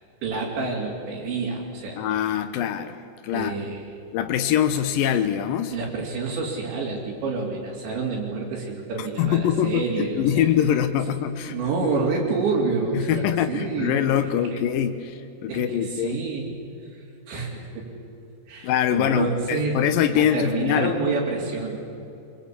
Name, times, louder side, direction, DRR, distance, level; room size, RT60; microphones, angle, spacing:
voice 1, 0.2-2.0 3.3-3.9 5.7-10.5 11.5-14.0 14.5-14.6 15.5-16.5 16.9-17.8 18.5-19.8 20.1-21.8, right 4 dB, 75° right, -5 dB, 5.3 m, -28 dB
voice 2, 2.0-3.0 3.2-3.6 4.1-5.8 9.0-11.6 11.8-11.9 12.9-16.2 18.6-21.0, left 9 dB, 80° left, 8 dB, 2.0 m, -23 dB
25.0 x 23.5 x 8.6 m, 2.7 s
omnidirectional pair, 5.3 m